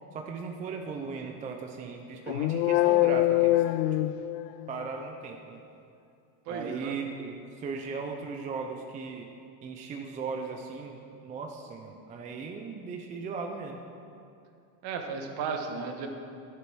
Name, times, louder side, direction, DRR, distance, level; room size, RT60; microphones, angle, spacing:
voice 1, 0.1-3.6 4.7-5.6 6.5-9.3 9.6-13.8, right 4 dB, 15° right, 2 dB, 0.5 m, -37 dB
sound 1, 2.3-4.8, left 15 dB, 80° left, 0.6 m, -24 dB
voice 2, 6.5-6.9 14.8-16.1, right 5 dB, 50° right, 4 dB, 1.5 m, -34 dB
13.0 x 7.5 x 6.1 m, 2.5 s
supercardioid pair, 145°, 48 cm